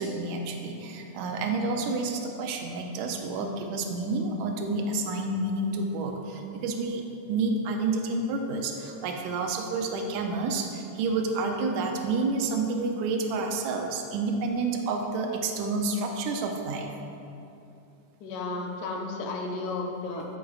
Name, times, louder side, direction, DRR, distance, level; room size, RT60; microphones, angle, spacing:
voice 1, 0.0-16.9, right 3 dB, 80° right, 3 dB, 1.7 m, -29 dB
voice 2, 18.2-20.3, left 3 dB, 75° left, 1 dB, 1.8 m, -33 dB
11.5 x 4.8 x 2.4 m, 2.7 s
omnidirectional pair, 3.7 m